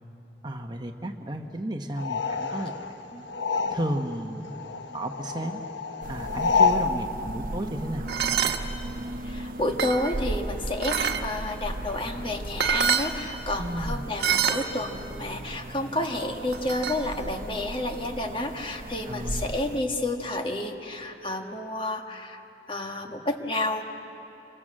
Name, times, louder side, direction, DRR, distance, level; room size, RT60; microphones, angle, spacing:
voice 1, 0.4-3.2 3.7-4.5 4.9-5.6 6.1-8.1 13.6-14.0 19.1-19.5, right 1 dB, 25° right, 4 dB, 1.1 m, -33 dB
sound 1, 1.9-4.2 4.4-6.9, left 5 dB, 90° left, 1.2 m, -27 dB
sound 2, 6.0-19.8, right 1 dB, 50° right, 0.8 m, -37 dB
sound 3, 8.1-8.6 9.3-10.2 10.8-11.2 12.3-12.4 12.6-13.1 14.2-14.7 16.5-17.0, right 7 dB, 70° right, 1.4 m, -25 dB
voice 2, 9.2-22.4 22.7-23.8, left 1 dB, 30° left, 4 dB, 1.6 m, -30 dB
28.0 x 24.0 x 7.6 m, 3.0 s
head